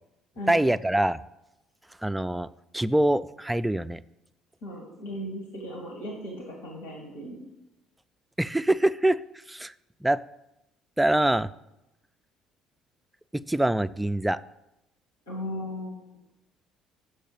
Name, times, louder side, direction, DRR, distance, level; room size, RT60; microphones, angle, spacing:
voice 1, 0.5-1.2 2.0-2.5 2.7-4.0 8.4-9.2 9.5-9.7 10.0-10.2 11.0-11.5 13.3-14.4, right 1 dB, 10° right, 13 dB, 0.3 m, -24 dB
voice 2, 4.6-7.4 15.3-16.0, equal, 90° left, 0 dB, 1.7 m, -37 dB
6.5 x 5.5 x 6.8 m, 0.92 s
hypercardioid pair, 60°, 0 cm